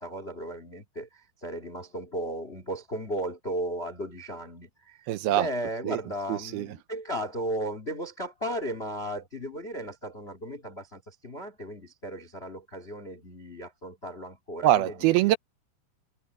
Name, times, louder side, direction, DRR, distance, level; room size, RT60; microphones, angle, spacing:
voice 1, 0.0-15.3, right 1 dB, 35° left, 1.0 m, -35 dB
voice 2, 5.1-5.5 5.9-6.0 6.3-6.7 14.6-15.4, right 14 dB, 80° right, 2.5 m, -23 dB
omnidirectional pair, 4.7 m